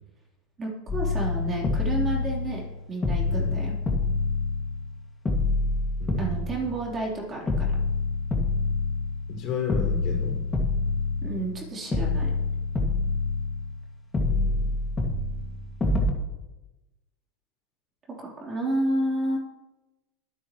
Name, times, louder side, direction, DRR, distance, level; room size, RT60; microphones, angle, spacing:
voice 1, 0.6-3.7 6.2-7.7 11.2-12.3 18.1-19.4, right 2 dB, 25° right, -2 dB, 3.7 m, -30 dB
sound 1, 0.9-2.7 3.0-4.9 5.2-7.1 7.5-9.4 9.7-11.6 11.9-13.8 14.1-16.1, left 3 dB, 15° left, 2.1 m, -27 dB
voice 2, 3.3-3.6 6.0-6.5 9.3-10.5 14.2-14.8, left 5 dB, 45° left, 0 dB, 5.1 m, -33 dB
24.0 x 8.9 x 3.1 m, 1.0 s
supercardioid pair, 135°, 0 cm